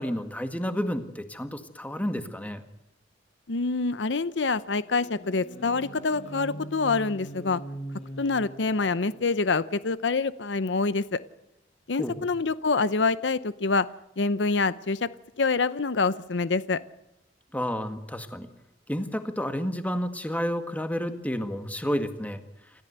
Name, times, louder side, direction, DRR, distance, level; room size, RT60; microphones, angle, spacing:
voice 1, 0.0-2.6 12.0-12.3 17.5-18.5 18.9-22.4, equal, 10° left, 8 dB, 1.8 m, -30 dB
voice 2, 3.5-7.6 8.2-11.2 11.9-13.9 14.2-15.1 15.4-16.8, left 4 dB, 80° left, 15 dB, 0.8 m, -26 dB
sound 1, 4.3-9.4, right 1 dB, 40° left, 6.9 m, -42 dB
28.0 x 14.5 x 8.1 m, 0.93 s
head